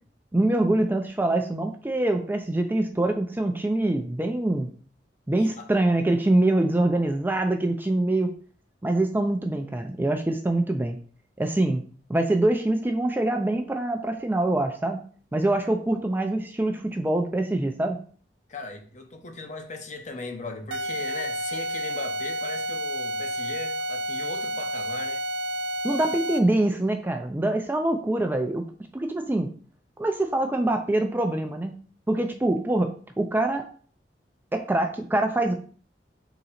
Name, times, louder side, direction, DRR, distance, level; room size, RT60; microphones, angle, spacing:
voice 1, 0.3-4.7 5.3-8.3 8.8-11.0 11.4-11.8 12.1-15.0 15.3-18.0 25.8-28.6 28.9-29.5 30.0-31.7 32.1-33.6 34.5-35.5, right 1 dB, 10° right, 0.4 m, -24 dB
voice 2, 5.4-5.7 18.5-25.2, left 3 dB, 45° left, 0.7 m, -38 dB
sound 1, 20.7-26.6, equal, 90° right, 0.4 m, -30 dB
3.8 x 2.9 x 4.2 m
head